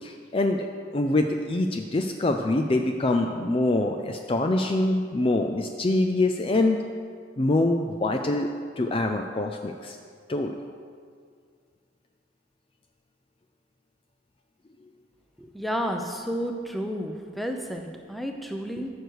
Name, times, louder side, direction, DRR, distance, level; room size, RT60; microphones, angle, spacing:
voice 1, 0.0-0.7 0.9-6.8 7.4-8.5 8.8-10.0 10.3-10.5, left 2 dB, 30° left, 5 dB, 0.4 m, -24 dB
voice 2, 15.4-18.9, equal, ahead, 3 dB, 0.7 m, -31 dB
14.0 x 6.5 x 4.7 m, 2.1 s
head